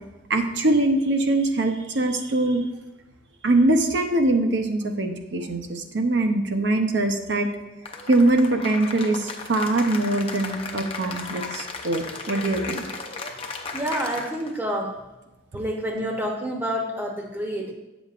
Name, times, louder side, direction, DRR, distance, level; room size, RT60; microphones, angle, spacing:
voice 1, 0.3-2.7 3.4-7.5 8.1-12.9, right 2 dB, 65° right, 6 dB, 0.7 m, -22 dB
Cheering / Applause, 7.9-14.6, left 4 dB, 30° left, 0.6 m, -35 dB
voice 2, 13.7-15.0 15.5-17.7, equal, 10° right, 1 dB, 0.8 m, -28 dB
9.0 x 7.0 x 2.5 m, 1.1 s
head